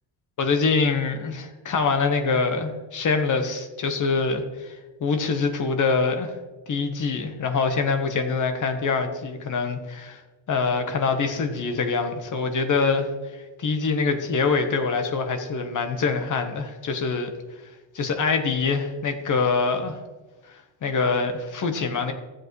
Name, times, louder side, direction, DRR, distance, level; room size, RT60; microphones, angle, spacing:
voice 1, 0.4-6.3 6.7-10.2 10.5-13.1 13.6-17.3 17.9-20.0 20.5-22.1, left 4 dB, 40° left, 6 dB, 1.3 m, -24 dB
15.0 x 7.7 x 3.2 m, 1.2 s
cardioid pair, 160°, 45 cm